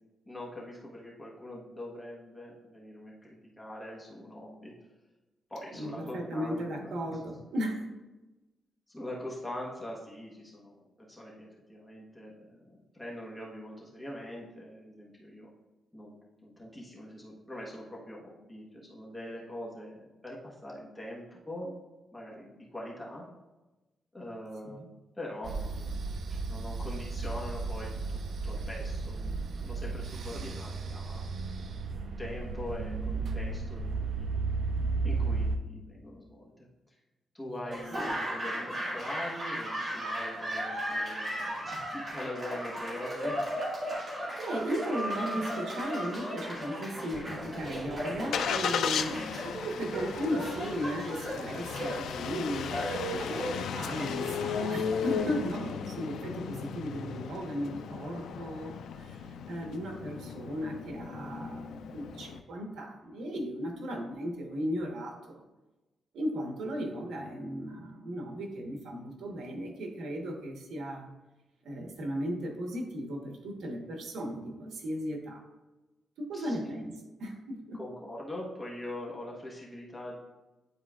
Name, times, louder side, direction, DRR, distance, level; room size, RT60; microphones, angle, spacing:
voice 1, 0.3-4.7 5.5-7.4 8.9-12.7 12.9-15.5 15.9-16.2 16.4-21.7 22.1-23.2 24.1-24.9 25.2-31.2 32.2-34.3 35.0-36.5 37.3-43.4 49.0-49.3 76.3-76.8 77.7-80.2, left 1 dB, 10° left, -4 dB, 1.2 m, -43 dB
voice 2, 5.7-7.9 24.6-24.8 43.8-44.1 44.4-49.1 49.4-65.4 66.1-71.1 71.6-75.4 76.2-76.9 77.2-77.8, equal, 85° right, 1 dB, 1.1 m, -36 dB
sound 1, 25.4-35.6, right 4 dB, 55° right, 0.4 m, -34 dB
Laughter / Applause, 37.7-55.8, equal, 30° right, 2.0 m, -36 dB
Engine starting, 47.1-62.4, left 7 dB, 90° left, 0.4 m, -36 dB
9.8 x 4.3 x 2.4 m, 1.1 s
wide cardioid pair, 160°, 0 cm